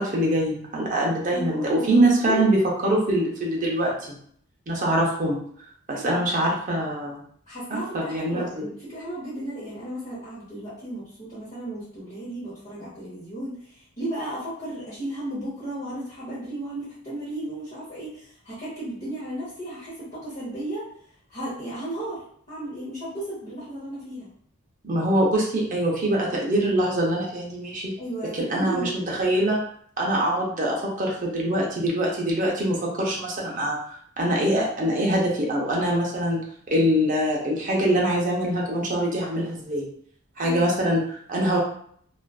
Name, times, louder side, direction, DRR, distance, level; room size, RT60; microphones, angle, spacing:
voice 1, 0.0-4.1 4.7-5.4 5.9-7.2 7.7-8.7 24.8-27.9 28.3-29.6 30.0-36.4 36.7-39.9 40.4-41.6, right 1 dB, 35° right, -2 dB, 0.6 m, -24 dB
voice 2, 1.3-2.4 5.9-6.2 7.5-20.9 21.3-22.2 22.5-24.3 28.0-29.1, right 1 dB, 35° left, -11 dB, 0.8 m, -34 dB
2.4 x 2.3 x 2.3 m, 0.63 s
head